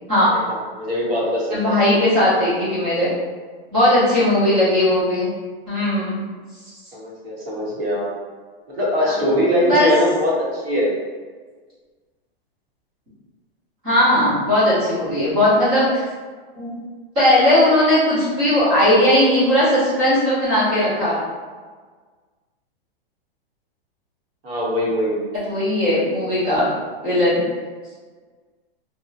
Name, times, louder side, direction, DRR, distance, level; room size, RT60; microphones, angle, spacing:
voice 1, 0.3-1.8 6.9-8.1 8.7-10.9 24.4-25.3, equal, 70° right, -5 dB, 1.2 m, -22 dB
voice 2, 1.5-3.1 3.7-5.3 5.7-6.2 9.0-9.9 13.8-16.0 16.6-16.8 17.2-21.2 25.5-26.7 27.0-27.4, left 1 dB, 10° right, -11 dB, 0.3 m, -18 dB
2.8 x 2.3 x 2.6 m, 1.5 s
supercardioid pair, 170°, 30 cm